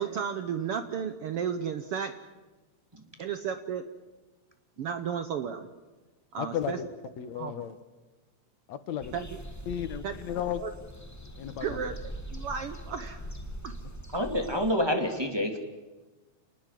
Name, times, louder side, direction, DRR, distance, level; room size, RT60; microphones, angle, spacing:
voice 1, 0.0-2.2 3.2-3.9 4.8-5.7 6.3-6.8 7.3-7.5 9.1-9.3 10.0-10.1 10.6-10.7 11.6-11.9 12.3-13.3 13.6-13.7, right 7 dB, 65° right, 10 dB, 1.6 m, -33 dB
voice 2, 6.4-6.9 7.2-7.8 8.7-9.1 9.7-10.6 11.4-11.8, left 10 dB, 70° left, 11 dB, 2.3 m, -34 dB
sound 1, 9.0-14.7, equal, 15° left, 0.5 m, -42 dB
voice 3, 14.1-15.6, equal, 10° right, 4 dB, 2.3 m, -27 dB
29.0 x 19.5 x 7.6 m, 1.2 s
omnidirectional pair, 3.3 m